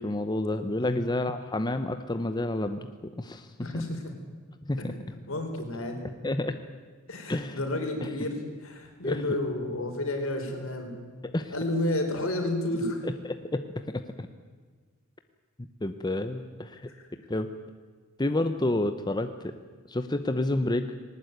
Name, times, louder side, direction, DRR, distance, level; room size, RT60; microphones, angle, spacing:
voice 1, 0.0-2.9 3.2-3.5 4.7-4.9 6.2-6.6 7.3-7.6 8.0-8.1 9.0-9.2 11.3-11.5 13.0-14.0 15.8-16.9 17.3-17.5 18.2-19.5 19.9-20.9, left 1 dB, 20° left, 8 dB, 0.8 m, -29 dB
voice 2, 3.6-4.1 4.8-6.0 7.1-10.9 11.5-13.1 16.9-17.0, left 1 dB, 70° left, 4 dB, 4.3 m, -31 dB
19.5 x 19.0 x 9.4 m, 1.5 s
head